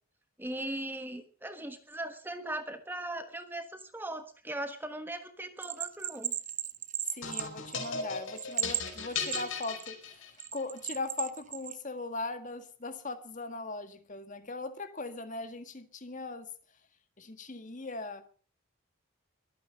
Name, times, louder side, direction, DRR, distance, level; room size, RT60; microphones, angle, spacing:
voice 1, 0.4-6.3, right 1 dB, 10° right, 1.3 m, -39 dB
Bell, 5.6-8.0 8.4-9.9 10.4-11.8, right 11 dB, 35° right, 0.8 m, -35 dB
voice 2, 7.1-16.5 17.2-18.3, left 3 dB, 35° left, 1.7 m, -39 dB
sound 1, 7.2-10.6, left 5 dB, 65° left, 4.7 m, -37 dB
23.5 x 9.5 x 5.5 m
head